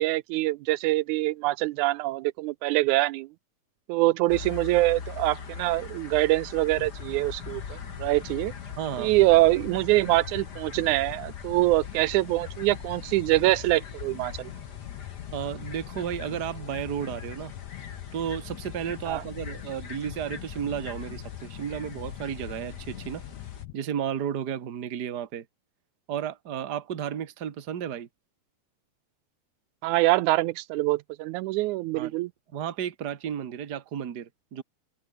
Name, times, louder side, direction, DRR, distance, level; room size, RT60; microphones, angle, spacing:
voice 1, 0.0-3.3 3.9-8.5 9.0-14.5 19.1-19.2 29.8-32.3, right 19 dB, 85° right, 2.0 m, -24 dB
sound 1, 4.3-23.6, left 5 dB, 35° left, 2.6 m, -42 dB
sound 2, 6.8-23.7, left 18 dB, 80° left, 1.9 m, -42 dB
voice 2, 8.8-9.1 15.3-17.5 18.1-23.2 23.7-25.4 26.1-28.1 31.9-32.1 32.5-34.6, right 9 dB, 40° right, 1.7 m, -33 dB
omnidirectional pair, 3.4 m